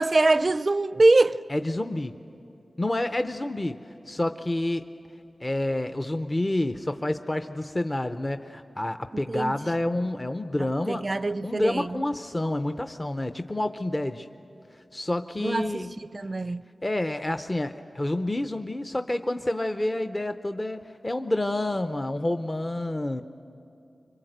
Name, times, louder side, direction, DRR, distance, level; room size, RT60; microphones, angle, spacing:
voice 1, 0.0-1.4 9.1-9.5 10.9-12.0 15.4-16.6, right 2 dB, 45° right, 0.5 m, -23 dB
voice 2, 1.5-2.2 2.8-4.9 5.4-11.0 11.4-14.3 14.9-15.9 16.8-23.2, left 1 dB, 25° left, 0.6 m, -28 dB
26.0 x 23.5 x 8.0 m
wide cardioid pair, 65°, 0 cm